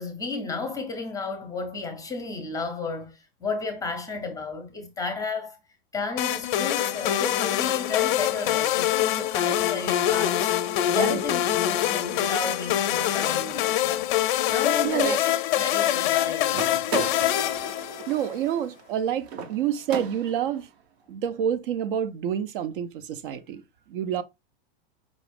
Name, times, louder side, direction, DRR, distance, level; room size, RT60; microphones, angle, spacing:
voice 1, 0.0-5.6 5.9-10.5 10.9-14.1 14.5-17.1, left 4 dB, 10° left, 0.7 m, -33 dB
sound 1, 6.2-18.4, left 12 dB, 50° left, 0.4 m, -25 dB
voice 2, 14.8-15.2 16.9-17.0 18.1-20.7 21.1-23.6 23.9-24.2, right 9 dB, 55° right, 0.6 m, -28 dB
sound 2, 16.5-20.6, right 7 dB, 85° right, 1.0 m, -36 dB
5.0 x 2.4 x 3.4 m
hypercardioid pair, 140°, 31 cm